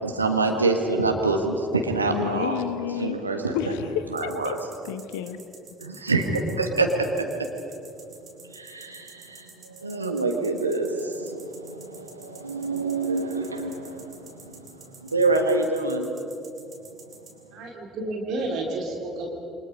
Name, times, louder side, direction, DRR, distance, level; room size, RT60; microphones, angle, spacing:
voice 1, 0.0-2.6 3.0-3.6 4.1-4.6 5.8-7.2 8.5-16.1, right 3 dB, 85° right, 3 dB, 1.7 m, -26 dB
voice 2, 2.1-3.2 3.5-4.5 4.8-5.4, left 10 dB, 70° left, 11 dB, 1.2 m, -30 dB
sound 1, 4.2-17.3, right 4 dB, 40° right, 5.0 m, -48 dB
voice 3, 17.5-19.3, right 2 dB, 55° right, 0 dB, 3.5 m, -30 dB
29.0 x 24.5 x 5.3 m, 2.7 s
figure-of-eight pair, 50°, 0 cm